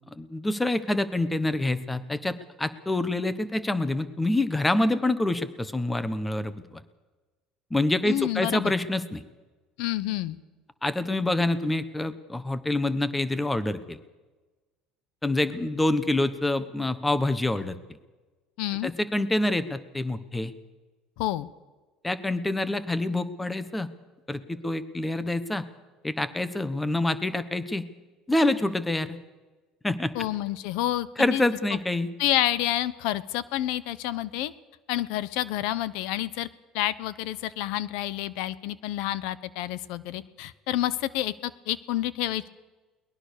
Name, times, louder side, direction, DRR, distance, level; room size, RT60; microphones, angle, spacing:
voice 1, 0.1-6.8 7.7-9.2 10.8-14.0 15.2-17.8 18.8-20.5 22.0-23.9 24.3-25.6 26.0-27.9 28.3-29.2 29.8-30.1 31.2-32.1, left 2 dB, 5° left, 14 dB, 1.1 m, -26 dB
voice 2, 8.0-8.7 9.8-10.4 18.6-18.9 21.2-21.5 30.1-31.4 32.2-34.5 34.9-36.5 36.7-42.5, left 14 dB, 70° left, 18 dB, 1.0 m, -29 dB
22.5 x 20.0 x 6.7 m, 1.2 s
cardioid pair, 160°, 0 cm